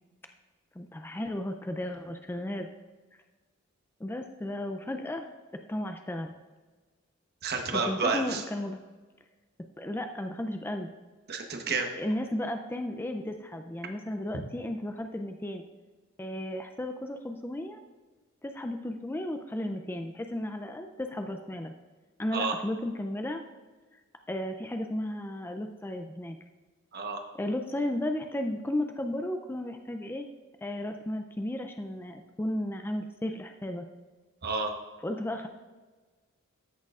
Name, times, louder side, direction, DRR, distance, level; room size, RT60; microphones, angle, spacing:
voice 1, 0.8-2.7 4.0-5.3 5.7-6.3 7.7-8.8 9.8-10.9 11.9-15.6 16.2-17.8 18.4-21.7 22.2-23.4 24.3-26.4 27.4-30.3 30.6-33.9 35.0-35.5, left 1 dB, 10° left, 5 dB, 0.4 m, -34 dB
voice 2, 7.4-8.4 11.3-11.9 22.3-22.5 26.9-27.2 34.4-34.7, right 4 dB, 50° right, 4 dB, 1.0 m, -30 dB
13.5 x 6.4 x 2.4 m, 1.3 s
head